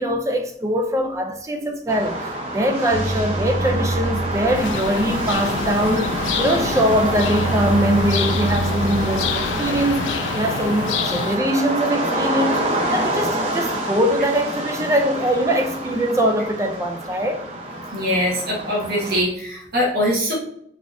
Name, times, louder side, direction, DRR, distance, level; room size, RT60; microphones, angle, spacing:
voice 1, 0.0-17.4, equal, 15° right, 0.4 m, -22 dB
sound 1, 1.9-19.2, right 1 dB, 35° right, 0.8 m, -27 dB
sound 2, 2.9-10.1, right 2 dB, 80° right, 0.7 m, -28 dB
sound 3, 4.5-11.4, left 7 dB, 80° left, 0.3 m, -28 dB
voice 2, 17.9-20.3, equal, 55° right, 1.5 m, -22 dB
4.1 x 3.6 x 2.6 m
head